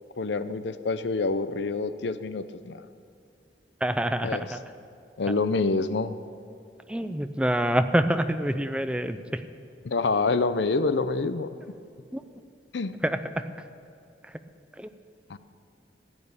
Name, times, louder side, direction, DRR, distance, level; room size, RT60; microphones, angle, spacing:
voice 1, 0.2-2.8 4.2-4.4 5.2-6.2 9.8-11.5 12.7-12.9 15.3-15.4, left 3 dB, 75° left, 13 dB, 0.6 m, -27 dB
voice 2, 3.8-4.6 6.9-9.4 12.1-12.2 13.0-13.5 14.8-14.9, right 1 dB, 5° right, 10 dB, 0.4 m, -26 dB
15.0 x 8.9 x 7.1 m, 2.5 s
head